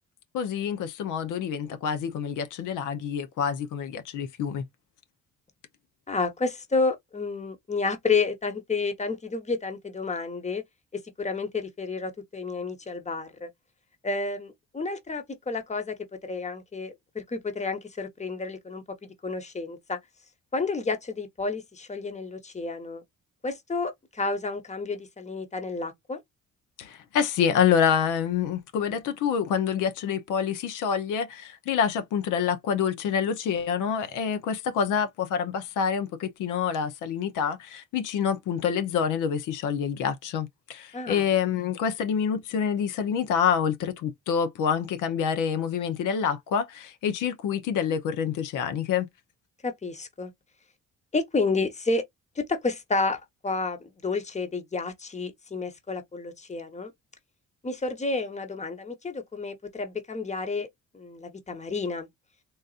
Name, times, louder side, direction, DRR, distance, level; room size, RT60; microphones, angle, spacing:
voice 1, 0.3-4.6 26.8-49.1, left 7 dB, 85° left, 0.8 m, -27 dB
voice 2, 6.1-10.6 11.2-13.5 14.0-15.9 16.3-18.8 19.2-20.0 20.5-23.0 23.4-26.2 40.9-41.2 49.6-50.3 51.1-52.0 52.4-56.9 57.6-60.7 60.9-62.1, left 3 dB, 25° left, 1.0 m, -30 dB
4.0 x 2.5 x 2.4 m
cardioid pair, 90°, 30 cm